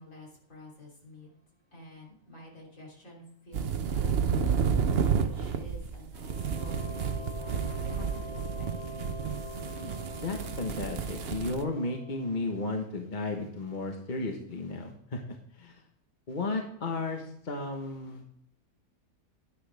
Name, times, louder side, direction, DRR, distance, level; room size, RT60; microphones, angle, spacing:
voice 1, 0.0-1.3 1.7-7.6 7.8-9.0 9.7-10.1, left 1 dB, 60° left, -2 dB, 3.6 m, -50 dB
sound 1, 3.5-11.6, right 6 dB, 50° right, 0.8 m, -31 dB
sound 2, 6.2-12.8, left 1 dB, 90° left, 5.0 m, -45 dB
voice 2, 10.2-15.2 15.5-15.8 16.3-18.2, left 2 dB, 35° left, 3 dB, 1.3 m, -34 dB
10.5 x 10.0 x 3.4 m, 0.71 s
omnidirectional pair, 1.6 m